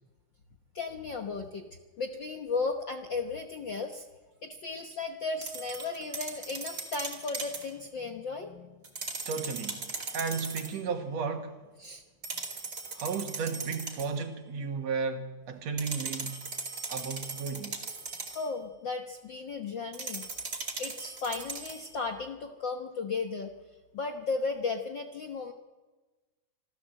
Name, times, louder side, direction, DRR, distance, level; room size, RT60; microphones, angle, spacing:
voice 1, 0.7-1.7 2.0-4.1 4.4-8.7 11.8-12.0 18.3-20.3 20.8-23.5 23.9-25.5, left 4 dB, 60° left, 1.3 m, -35 dB
sound 1, 5.4-7.7 8.8-10.8 12.2-14.2 15.8-18.5 19.9-21.9, right 4 dB, 35° right, 3.0 m, -39 dB
voice 2, 9.3-11.6 13.0-16.4 16.9-17.8, right 5 dB, 60° right, 2.5 m, -34 dB
26.5 x 14.0 x 7.6 m
omnidirectional pair, 3.5 m